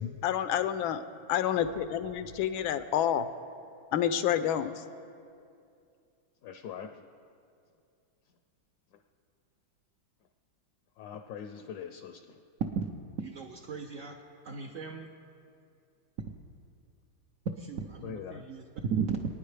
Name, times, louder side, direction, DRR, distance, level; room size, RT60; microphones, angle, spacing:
voice 1, 0.1-1.0 1.3-3.3 3.9-4.7, left 10 dB, 85° left, 11 dB, 1.5 m, -28 dB
voice 2, 6.4-7.1 8.9-9.0 11.0-12.4 18.0-18.4, left 7 dB, 70° left, 6 dB, 1.0 m, -42 dB
voice 3, 13.2-14.2 14.4-15.1 17.6-19.2, right 6 dB, 70° right, 1 dB, 0.7 m, -35 dB
27.0 x 9.5 x 3.3 m, 2.5 s
omnidirectional pair, 2.2 m